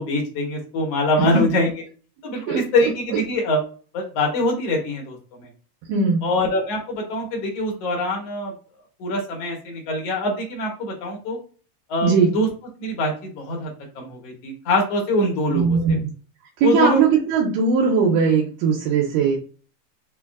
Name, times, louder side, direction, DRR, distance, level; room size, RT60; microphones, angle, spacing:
voice 1, 0.0-1.7 2.2-3.6 3.9-5.5 6.2-8.5 9.0-11.4 11.9-12.5 12.8-16.0 16.6-17.0, left 1 dB, 65° left, -1 dB, 1.7 m, -24 dB
voice 2, 2.5-2.9 5.9-6.3 12.0-12.3 15.5-16.0 16.6-19.4, right 5 dB, 85° right, -2 dB, 2.3 m, -19 dB
5.3 x 2.3 x 2.3 m, 0.38 s
omnidirectional pair, 3.8 m